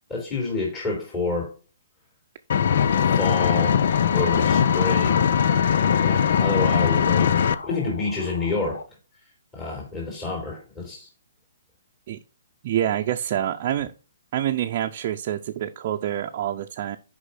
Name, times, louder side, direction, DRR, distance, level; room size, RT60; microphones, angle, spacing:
voice 1, 0.1-1.5 2.9-3.8 4.1-5.2 6.0-7.3 7.6-8.8 9.5-11.1, left 3 dB, 20° left, -1 dB, 3.2 m, -28 dB
Engine, 2.5-7.5, left 8 dB, 60° left, 0.6 m, -20 dB
sound 1, 3.2-8.8, left 4 dB, 80° left, 1.3 m, -37 dB
voice 2, 12.6-13.9 14.3-17.0, right 11 dB, 45° right, 3 dB, 0.6 m, -26 dB
6.6 x 5.3 x 5.6 m, 0.34 s
hypercardioid pair, 150°, 0 cm